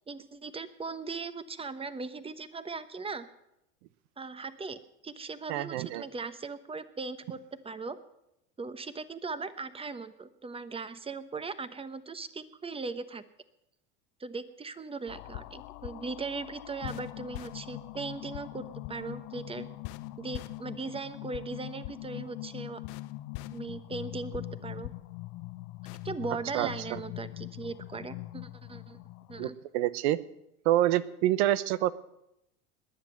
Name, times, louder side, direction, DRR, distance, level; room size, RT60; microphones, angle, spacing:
voice 1, 0.1-3.3 4.2-7.4 7.6-8.0 8.6-13.2 14.2-19.7 20.2-22.8 23.5-24.9 26.0-29.0 29.3-29.5, right 4 dB, 15° right, 13 dB, 1.0 m, -39 dB
voice 2, 5.5-6.1 26.5-26.7 29.4-30.2 30.6-31.9, right 14 dB, 70° right, 17 dB, 0.9 m, -27 dB
sound 1, 15.1-29.5, left 18 dB, 60° left, 0.7 m, -42 dB
20.5 x 7.5 x 7.5 m, 0.85 s
hypercardioid pair, 100°, 35 cm